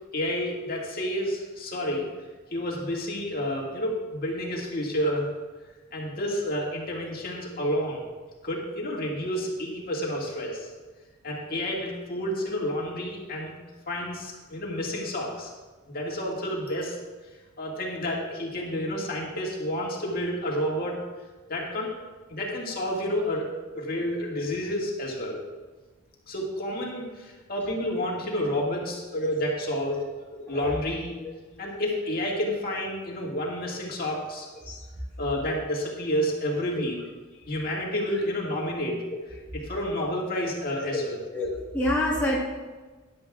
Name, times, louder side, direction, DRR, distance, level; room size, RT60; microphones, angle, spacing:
voice 1, 0.1-2.1 2.5-5.3 5.9-8.1 8.4-10.7 11.2-13.5 13.9-15.5 15.9-17.0 17.6-21.0 21.5-21.9 22.3-23.5 23.7-25.4 26.3-30.0 30.5-31.2 31.6-34.5 35.2-37.0 37.5-39.0 39.6-41.2, equal, 45° left, -2 dB, 2.0 m, -30 dB
voice 2, 30.4-30.8 31.2-31.3 34.6-34.8 38.1-38.2 39.3-39.5 41.3-42.4, left 1 dB, 10° left, -6 dB, 1.5 m, -28 dB
14.5 x 10.5 x 2.4 m, 1.3 s
head